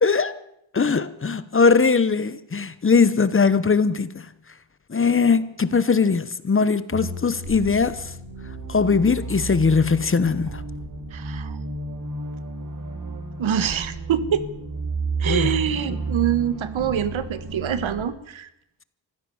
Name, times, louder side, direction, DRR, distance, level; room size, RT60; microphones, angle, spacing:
voice 1, 0.0-0.4 0.7-4.2 4.9-8.1 8.7-10.6 15.2-15.6, left 5 dB, 25° left, 0.9 m, -20 dB
sound 1, 6.9-18.1, right 3 dB, 40° right, 3.1 m, -32 dB
voice 2, 11.1-11.5 13.4-14.5 15.2-18.5, right 9 dB, 80° right, 1.6 m, -25 dB
24.5 x 15.5 x 7.1 m
wide cardioid pair, 155°, 46 cm